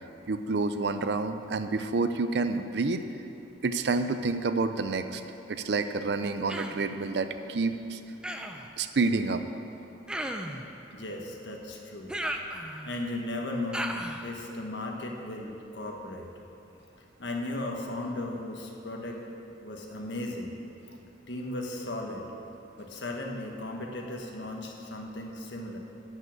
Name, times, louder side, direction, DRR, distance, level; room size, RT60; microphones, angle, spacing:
voice 1, 0.3-3.0 3.6-5.2 5.5-8.0 8.8-9.4, right 3 dB, 65° right, 9 dB, 0.5 m, -28 dB
Human voice, 6.5-6.9 8.2-8.7 10.1-10.7 12.1-13.0 13.7-14.3, right 1 dB, 5° right, 0.5 m, -35 dB
voice 2, 10.9-12.2 12.8-14.0 14.2-16.3 17.2-19.2 19.6-20.5 21.3-22.2 22.8-25.8, left 2 dB, 85° left, 1 dB, 1.4 m, -36 dB
12.5 x 5.6 x 8.5 m, 2.9 s
head